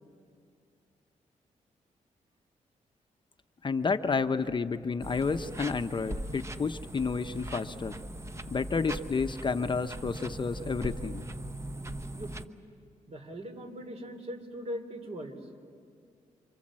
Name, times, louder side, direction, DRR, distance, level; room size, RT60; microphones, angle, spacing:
voice 1, 3.6-7.9 8.5-11.3, left 4 dB, 35° left, 8 dB, 0.8 m, -30 dB
sound 1, 5.0-12.5, right 1 dB, 20° right, 1.0 m, -40 dB
voice 2, 13.1-15.3, equal, 50° right, 5 dB, 3.5 m, -40 dB
28.5 x 26.0 x 7.6 m, 2.2 s
cardioid pair, 90°, 13 cm